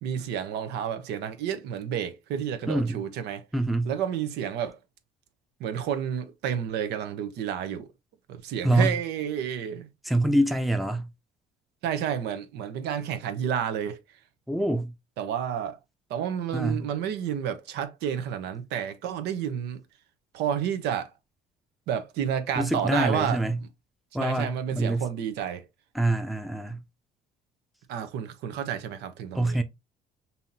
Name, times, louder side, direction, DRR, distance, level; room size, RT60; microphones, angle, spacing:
voice 1, 0.0-3.4 3.8-4.8 5.6-7.9 8.3-9.9 11.8-14.0 15.2-15.8 16.1-19.8 20.3-21.1 21.9-23.4 24.2-25.7 27.9-29.6, right 9 dB, 80° right, 0.8 m, -30 dB
voice 2, 2.7-3.0 3.5-3.9 8.6-8.9 10.0-11.1 14.5-14.9 16.5-16.9 22.5-23.6 24.1-25.1 25.9-26.8 29.3-29.6, right 1 dB, ahead, 0.6 m, -25 dB
5.5 x 2.8 x 2.7 m
cardioid pair, 110°, 17 cm